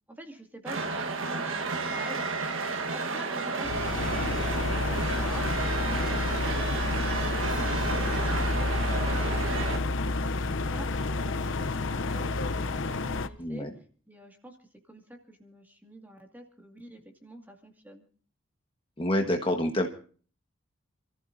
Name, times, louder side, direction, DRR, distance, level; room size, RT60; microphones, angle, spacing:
voice 1, 0.1-2.3 2.9-13.7 14.1-18.1, right 1 dB, 10° right, 3 dB, 2.2 m, -47 dB
sound 1, 0.7-9.8, right 3 dB, 75° right, 1.4 m, -32 dB
sound 2, 3.6-13.3, left 2 dB, 65° left, 0.7 m, -29 dB
voice 2, 13.4-13.7 19.0-19.9, left 1 dB, 25° left, 3 dB, 1.4 m, -27 dB
29.0 x 14.5 x 2.7 m, 0.42 s
head